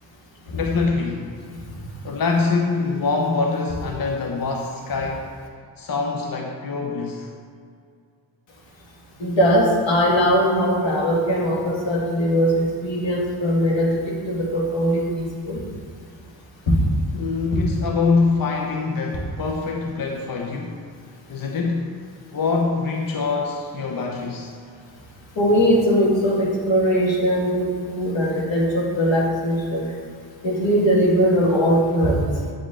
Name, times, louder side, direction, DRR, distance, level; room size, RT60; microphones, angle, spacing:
voice 1, 0.5-1.3 2.0-5.3 5.8-7.3 17.1-20.8 21.3-22.0 22.3-24.5, left 4 dB, 50° left, 1 dB, 0.7 m, -24 dB
voice 2, 9.2-15.6 16.7-16.8 25.4-29.9 30.4-32.3, equal, 85° left, -3 dB, 2.0 m, -20 dB
8.6 x 7.2 x 3.7 m, 2.3 s
wide cardioid pair, 140°, 44 cm